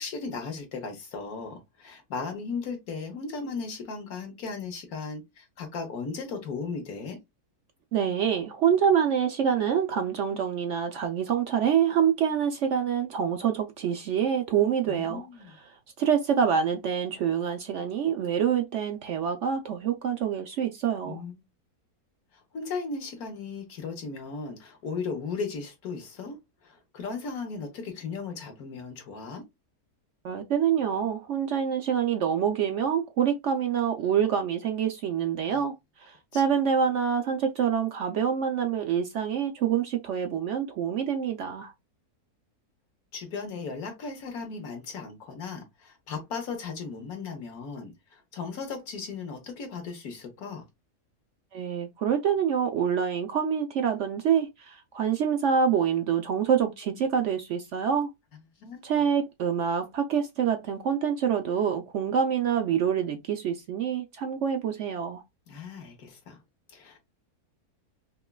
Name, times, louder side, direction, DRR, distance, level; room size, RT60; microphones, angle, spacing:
voice 1, 0.0-7.2 14.9-15.5 21.0-21.3 22.5-26.4 26.6-29.4 35.5-35.6 36.3-36.4 43.1-50.6 58.6-58.9 65.5-66.4 66.7-67.0, left 4 dB, 75° left, 1.6 m, -36 dB
voice 2, 7.9-15.2 16.0-21.2 30.2-35.7 36.3-41.7 51.5-58.1 58.8-65.2, right 8 dB, 65° right, 0.8 m, -26 dB
5.3 x 2.3 x 2.2 m
omnidirectional pair, 1.6 m